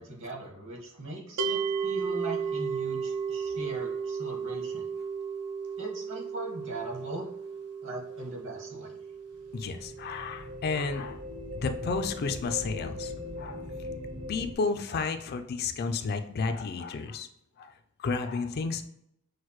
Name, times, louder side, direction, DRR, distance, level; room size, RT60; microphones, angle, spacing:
voice 1, 0.0-4.9 5.8-7.3 7.8-9.0, right 2 dB, 60° right, -1 dB, 1.5 m, -40 dB
sound 1, 1.4-12.5, right 6 dB, 85° right, 0.5 m, -35 dB
sound 2, 9.3-14.5, left 1 dB, 40° right, 0.8 m, -39 dB
voice 2, 9.5-11.2 11.5-13.1 13.4-13.9 14.3-17.3 17.6-17.7 18.0-18.9, left 4 dB, 45° left, 7 dB, 0.4 m, -32 dB
6.2 x 2.1 x 3.0 m, 0.77 s
head